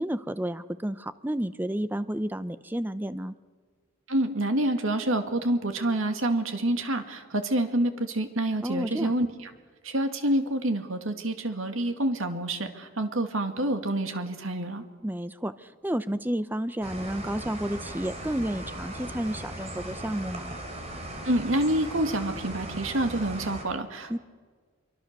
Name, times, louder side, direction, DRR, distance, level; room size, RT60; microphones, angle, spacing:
voice 1, 0.0-3.3 8.6-9.1 15.0-20.5 24.1-24.2, right 1 dB, 10° right, 13 dB, 0.6 m, -31 dB
voice 2, 4.1-9.5 9.8-14.8 21.2-24.2, right 1 dB, 75° right, 6 dB, 2.2 m, -27 dB
sound 1, 16.8-23.6, right 1 dB, 30° right, 3.5 m, -38 dB
26.0 x 24.0 x 6.8 m, 1.5 s
head